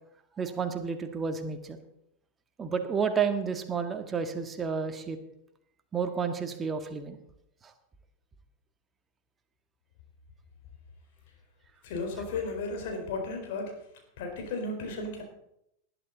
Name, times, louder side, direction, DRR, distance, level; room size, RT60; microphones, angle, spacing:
voice 1, 0.4-1.8 2.6-5.2 5.9-7.2 7.6-7.7, right 6 dB, 20° right, 7 dB, 1.8 m, -31 dB
voice 2, 11.8-13.7 14.2-15.2, left 3 dB, 50° left, 3 dB, 4.4 m, -34 dB
19.5 x 11.5 x 4.1 m, 0.79 s
figure-of-eight pair, 90°, 0 cm